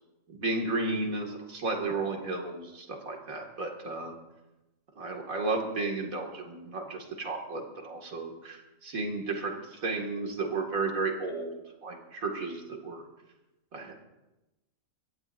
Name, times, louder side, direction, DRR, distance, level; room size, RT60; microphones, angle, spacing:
voice 1, 0.3-4.2 5.0-13.0 13.7-13.9, right 3 dB, 90° right, 1 dB, 2.6 m, -33 dB
23.5 x 16.0 x 2.6 m, 1.0 s
omnidirectional pair, 1.4 m